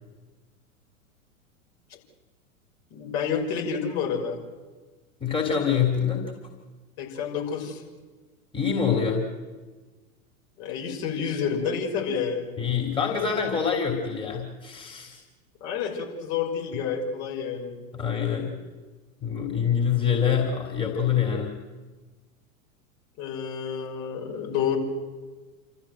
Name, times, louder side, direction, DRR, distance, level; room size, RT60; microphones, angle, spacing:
voice 1, 2.9-4.4 7.0-7.8 10.6-12.5 15.6-17.8 23.2-24.8, left 6 dB, 45° left, -1 dB, 6.2 m, -29 dB
voice 2, 5.2-6.3 8.5-9.3 12.6-15.2 17.9-18.6 19.2-21.6, left 7 dB, 10° left, 0 dB, 3.5 m, -25 dB
29.0 x 14.0 x 7.9 m, 1.3 s
figure-of-eight pair, 95°, 42 cm